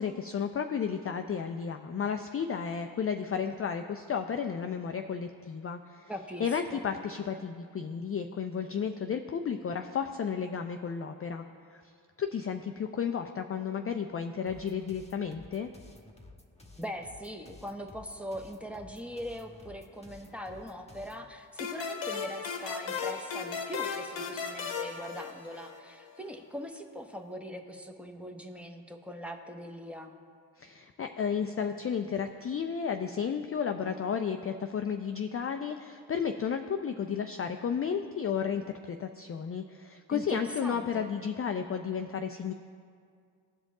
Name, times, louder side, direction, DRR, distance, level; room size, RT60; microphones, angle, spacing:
voice 1, 0.0-6.1 6.4-11.4 11.7-11.8 12.2-15.7 30.6-42.5, left 7 dB, 30° left, 6 dB, 0.4 m, -33 dB
voice 2, 6.1-6.9 16.8-30.1 40.1-41.1, equal, 5° right, 4 dB, 0.9 m, -41 dB
sound 1, 14.5-21.3, left 2 dB, 15° left, 1.1 m, -53 dB
sound 2, 21.6-25.9, left 5 dB, 70° left, 1.0 m, -36 dB
15.0 x 5.1 x 3.7 m, 2.2 s
supercardioid pair, 40°, 47 cm